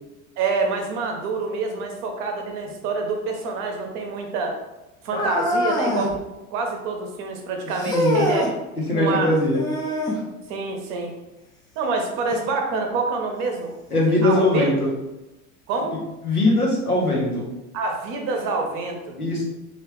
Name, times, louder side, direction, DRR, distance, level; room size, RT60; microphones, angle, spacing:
voice 1, 0.4-4.6 5.0-6.1 6.5-8.5 8.9-9.3 10.5-11.1 11.8-13.7 14.2-14.7 15.7-16.0 17.7-19.1, right 4 dB, 40° right, 3 dB, 0.7 m, -26 dB
sound 1, 5.1-6.2 7.8-8.5 9.5-10.2 12.3-12.4 13.3-13.4 14.3-14.4, equal, 10° left, 0.4 m, -24 dB
voice 2, 7.9-8.2 8.8-9.6 13.9-14.9 16.2-17.5 19.2-19.4, left 2 dB, 90° left, -3 dB, 0.9 m, -20 dB
3.1 x 2.5 x 3.3 m, 1.0 s
figure-of-eight pair, 75°, 43 cm